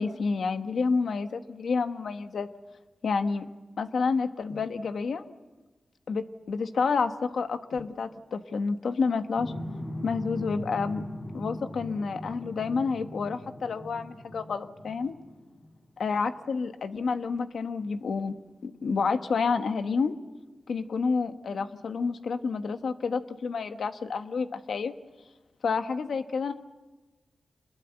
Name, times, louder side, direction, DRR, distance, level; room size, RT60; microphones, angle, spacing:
voice 1, 0.0-2.5 3.0-3.5 3.8-5.3 6.1-9.5 10.0-11.1 11.3-15.1 16.0-18.3 18.6-20.1 20.7-24.9 25.6-26.5, left 5 dB, 85° left, 8 dB, 1.2 m, -29 dB
sound 1, 9.4-15.9, left 1 dB, 60° left, 6.5 m, -40 dB
26.0 x 21.0 x 7.9 m, 1.2 s
cardioid pair, 50°, 0 cm